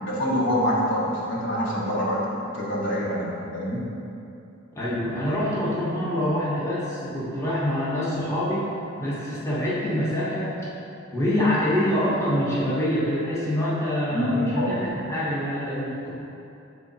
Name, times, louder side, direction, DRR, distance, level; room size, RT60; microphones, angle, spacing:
voice 1, 0.0-3.9 14.1-14.7, equal, 65° left, -6 dB, 1.3 m, -26 dB
voice 2, 4.7-8.7 9.0-10.6 11.1-16.1, left 1 dB, 15° left, -9 dB, 1.1 m, -25 dB
7.0 x 3.7 x 4.1 m, 2.7 s
head